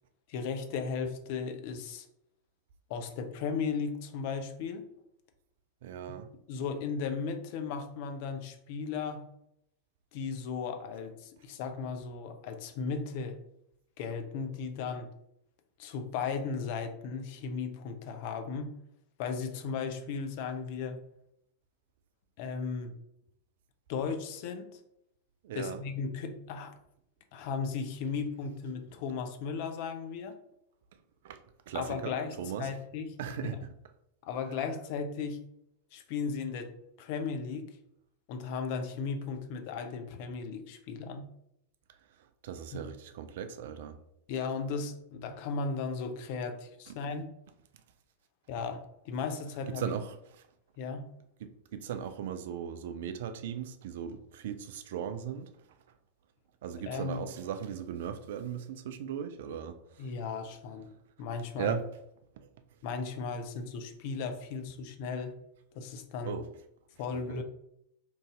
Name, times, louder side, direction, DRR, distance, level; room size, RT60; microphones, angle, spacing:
voice 1, 0.3-2.1 2.9-4.8 6.5-9.2 10.1-13.4 14.0-15.1 15.8-18.7 19.2-21.0 22.4-22.9 23.9-24.8 25.5-26.7 27.3-30.4 31.7-33.1 34.2-35.4 35.9-36.7 37.0-37.6 38.3-41.2 42.7-42.8 44.3-47.3 48.5-49.9 50.8-51.1 56.9-57.2 60.0-60.9 61.2-61.7 62.8-65.3 65.7-66.4 67.0-67.4, left 5 dB, 45° left, 0.4 m, -36 dB
voice 2, 5.8-6.3 25.4-25.8 31.2-31.4 31.7-32.7 33.2-33.6 41.9-44.0 46.9-47.0 49.7-50.5 51.4-55.5 56.6-60.1 61.6-61.8 62.4-62.5 66.3-66.5 67.3-67.4, right 8 dB, 55° right, 0.3 m, -38 dB
3.0 x 2.6 x 3.5 m
figure-of-eight pair, 90°, 0 cm